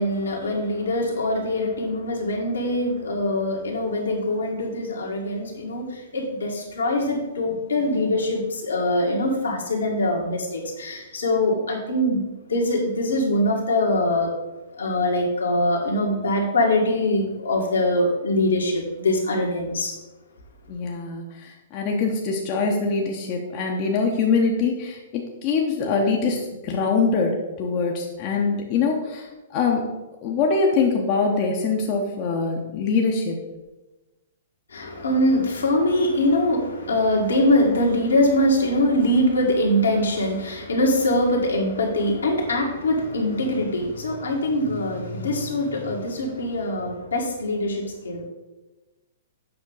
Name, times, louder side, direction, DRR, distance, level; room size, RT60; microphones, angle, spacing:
voice 1, 0.0-12.2 12.5-14.3 14.8-20.0 34.7-48.2, left 1 dB, 75° left, -1 dB, 1.9 m, -23 dB
voice 2, 20.7-27.3 27.6-29.8 30.2-33.4, left 4 dB, 40° left, 1 dB, 1.0 m, -23 dB
7.8 x 5.6 x 4.0 m, 1.1 s
figure-of-eight pair, 115°, 0 cm